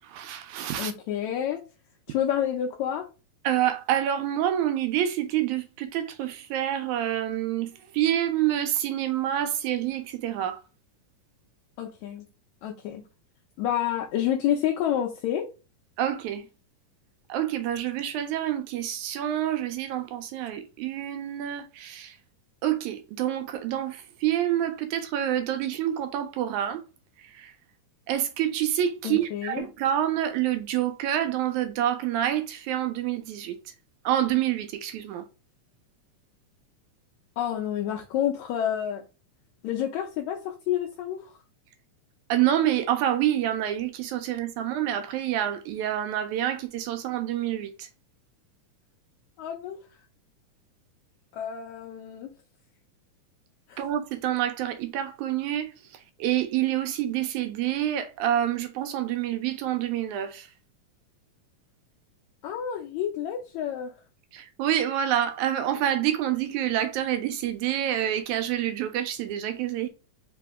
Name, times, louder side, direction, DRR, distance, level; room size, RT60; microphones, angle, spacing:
voice 1, 0.0-0.9 3.4-10.6 16.0-16.5 17.3-22.2 22.6-26.8 27.2-27.5 28.1-33.6 34.0-35.2 42.3-47.9 53.8-60.5 64.3-69.9, right 11 dB, 80° right, 1.7 m, -27 dB
voice 2, 0.8-1.6 2.1-3.1 11.8-12.2 12.6-13.0 13.6-15.5 29.0-29.6 37.4-39.0 39.6-41.3 49.4-49.8 51.3-52.3 53.7-53.8 62.4-63.9, left 10 dB, 80° left, 1.7 m, -29 dB
5.0 x 2.8 x 3.5 m
omnidirectional pair, 4.0 m